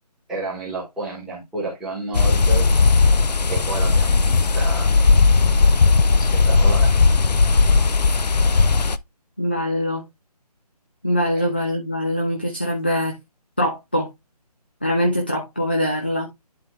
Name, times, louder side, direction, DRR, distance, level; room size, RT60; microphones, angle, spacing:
voice 1, 0.3-2.6 3.5-4.9 6.2-6.9 11.3-11.5, right 3 dB, ahead, 1.5 m, -31 dB
september forest wind, 2.1-9.0, left 4 dB, 80° left, 0.7 m, -16 dB
voice 2, 9.4-10.0 11.0-13.2 13.6-14.1 14.8-16.3, equal, 15° left, 0.5 m, -23 dB
10.5 x 3.7 x 3.3 m
figure-of-eight pair, 175°, 21 cm